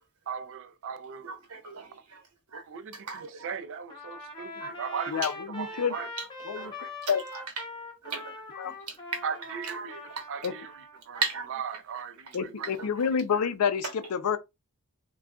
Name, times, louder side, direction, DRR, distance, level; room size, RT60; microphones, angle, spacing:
voice 1, 0.3-1.4 2.5-3.1 3.4-5.1 5.6-6.1 9.2-10.0 10.3-10.7 11.1-11.2 11.5-12.7, right 7 dB, 60° right, 0.4 m, -37 dB
voice 2, 1.2-3.5 4.5-4.8 5.1-5.3 5.7-6.3 6.5-7.4 8.0-9.2 9.5-10.5 11.1-11.5 12.3-12.4 12.6-13.5 13.8-13.9, right 4 dB, 90° right, 1.1 m, -38 dB
Trumpet, 3.9-11.0, left 2 dB, 20° left, 0.7 m, -43 dB
voice 3, 5.1-6.0 6.5-6.7 7.1-7.2 8.6-8.7 10.4-10.5 12.3-14.4, left 7 dB, 75° left, 0.4 m, -28 dB
3.7 x 2.3 x 2.2 m
head